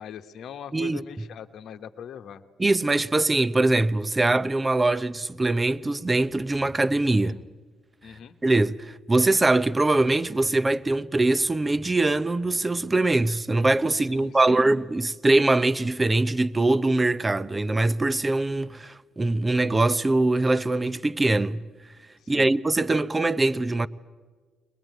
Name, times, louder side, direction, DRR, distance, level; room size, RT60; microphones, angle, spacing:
voice 1, 0.0-2.4 7.2-7.4 8.0-8.3 13.9-14.7 22.2-22.5, left 8 dB, 65° left, 1.1 m, -41 dB
voice 2, 2.6-7.4 8.4-21.6 22.3-23.9, right 2 dB, 20° right, 0.8 m, -22 dB
21.5 x 21.5 x 9.3 m
supercardioid pair, 60°, 0 cm